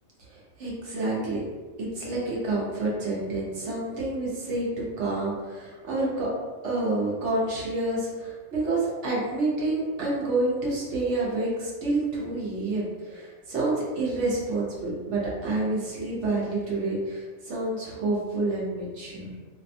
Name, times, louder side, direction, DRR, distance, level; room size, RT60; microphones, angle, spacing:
voice 1, 0.6-1.4 1.8-6.3 6.6-19.4, right 2 dB, 60° right, -5 dB, 1.0 m, -28 dB
2.6 x 2.2 x 2.6 m, 1.4 s
omnidirectional pair, 1.4 m